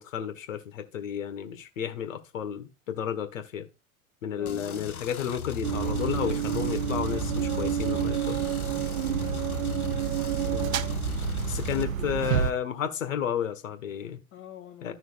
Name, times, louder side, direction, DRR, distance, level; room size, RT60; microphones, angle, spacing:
voice 1, 0.0-3.7 4.2-8.4 10.5-10.7 11.4-14.2 14.8-14.9, left 8 dB, 65° left, 1.6 m, -32 dB
voice 2, 4.4-5.1 9.1-9.6 11.7-12.2 14.3-14.9, left 10 dB, 35° left, 2.1 m, -46 dB
sound 1, 4.5-11.8, left 7 dB, 85° left, 0.6 m, -37 dB
sound 2, 5.6-12.5, right 9 dB, 70° right, 0.7 m, -29 dB
13.5 x 6.2 x 2.4 m
figure-of-eight pair, 85°, 42 cm